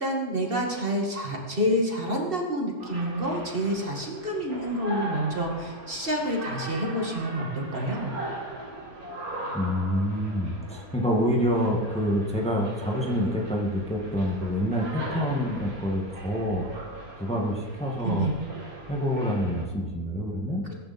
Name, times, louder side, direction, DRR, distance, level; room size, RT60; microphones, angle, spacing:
voice 1, 0.0-8.2 18.0-18.3, equal, 35° right, 0 dB, 2.4 m, -28 dB
sound 1, 2.8-19.7, right 1 dB, 70° right, 3.7 m, -39 dB
voice 2, 9.5-16.7 17.2-18.3 18.9-20.7, equal, 5° left, -1 dB, 1.9 m, -27 dB
22.0 x 11.0 x 4.4 m, 1.4 s
omnidirectional pair, 1.6 m